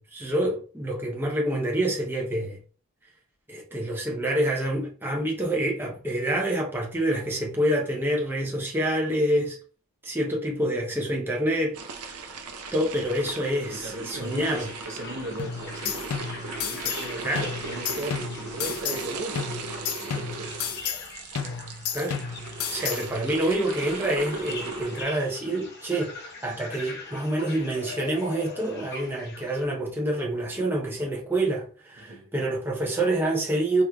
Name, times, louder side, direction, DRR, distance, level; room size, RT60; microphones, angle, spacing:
voice 1, 0.0-2.6 3.5-9.6 10.0-12.4 12.7-14.7 17.2-17.5 21.9-22.2 22.7-33.8, right 1 dB, 10° right, 0.6 m, -27 dB
sound 1, 11.7-25.0, right 3 dB, 90° right, 0.6 m, -37 dB
voice 2, 13.7-17.3 17.6-19.5 20.0-20.9 32.0-32.3, right 1 dB, 55° right, 0.7 m, -38 dB
sound 2, 13.8-29.6, left 4 dB, 50° left, 0.9 m, -43 dB
sound 3, 15.4-17.1 17.4-19.1 19.4-21.1 21.4-23.1, left 7 dB, 80° left, 0.5 m, -32 dB
3.6 x 3.0 x 2.2 m
head